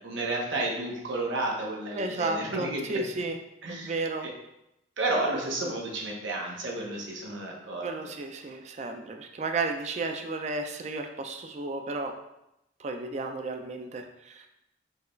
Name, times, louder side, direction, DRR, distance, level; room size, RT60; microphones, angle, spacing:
voice 1, 0.0-3.0 3.6-4.3 5.0-7.9, right 2 dB, 85° right, -1 dB, 0.8 m, -31 dB
voice 2, 1.9-3.4 3.7-4.3 7.8-12.1 12.8-14.5, right 3 dB, 35° right, 5 dB, 0.3 m, -33 dB
4.6 x 2.3 x 3.1 m, 0.86 s
head